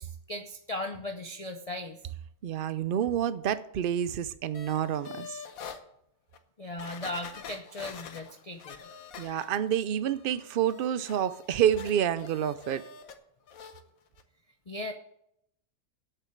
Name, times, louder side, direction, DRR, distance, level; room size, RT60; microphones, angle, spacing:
voice 1, 0.0-2.0 6.6-8.8 14.7-14.9, left 1 dB, 35° left, 0.6 m, -37 dB
voice 2, 2.4-5.4 9.2-12.8, right 9 dB, 75° right, 0.5 m, -28 dB
sound 1, 4.5-5.8 6.3-6.4 6.8-9.8 10.1-13.2 13.5-13.8 14.2-14.3, left 7 dB, 70° left, 1.3 m, -46 dB
8.3 x 6.9 x 8.6 m
omnidirectional pair, 1.6 m